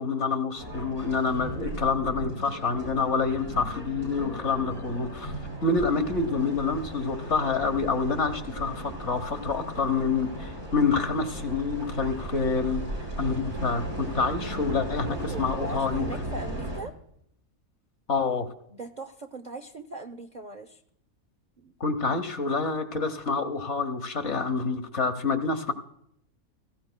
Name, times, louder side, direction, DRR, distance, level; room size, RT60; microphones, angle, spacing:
voice 1, 0.0-5.3 5.6-12.8 13.2-16.0 18.1-18.5 21.8-25.7, left 4 dB, 55° left, 8 dB, 1.3 m, -27 dB
sound 1, 0.5-16.8, right 1 dB, 90° right, 6.7 m, -36 dB
voice 2, 15.1-16.9 18.7-20.8 21.6-21.7 22.1-22.2, right 2 dB, 50° right, 6 dB, 0.5 m, -40 dB
17.5 x 16.0 x 2.2 m, 0.72 s
omnidirectional pair, 1.6 m